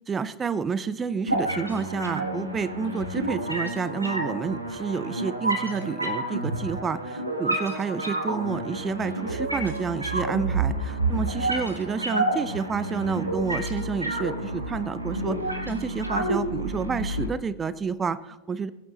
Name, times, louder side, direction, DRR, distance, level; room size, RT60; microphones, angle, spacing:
voice 1, 0.1-15.4 15.6-18.7, right 5 dB, 20° right, 15 dB, 0.6 m, -29 dB
sound 1, 1.3-17.3, right 2 dB, 85° right, 1.5 m, -29 dB
21.0 x 8.7 x 3.9 m, 1.0 s
figure-of-eight pair, 90°, 0 cm